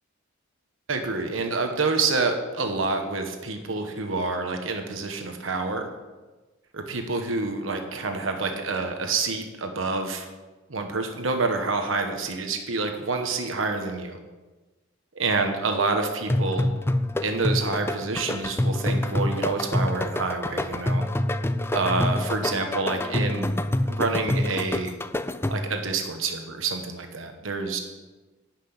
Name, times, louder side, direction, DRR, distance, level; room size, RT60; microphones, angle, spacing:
voice 1, 0.9-5.9 6.7-10.3 10.7-14.2 15.1-16.7 17.2-21.0 21.7-23.5 23.8-24.9 25.5-27.8, right 3 dB, 85° right, 5 dB, 1.2 m, -27 dB
sound 1, 16.3-25.8, left 1 dB, 10° left, 0.4 m, -26 dB
11.5 x 6.0 x 8.7 m, 1.2 s
head